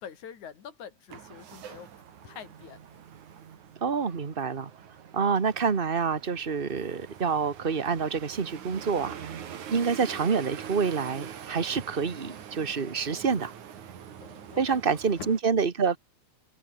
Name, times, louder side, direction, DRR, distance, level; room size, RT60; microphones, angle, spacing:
voice 1, 0.0-1.9 2.2-3.0 14.2-15.3, left 8 dB, 80° left, 4.1 m, -45 dB
sound 1, 1.1-15.4, right 8 dB, 85° right, 3.6 m, -44 dB
voice 2, 3.8-4.7 5.1-9.2 9.7-13.5 14.6-16.0, right 5 dB, 60° right, 0.5 m, -27 dB
open air
omnidirectional pair, 3.3 m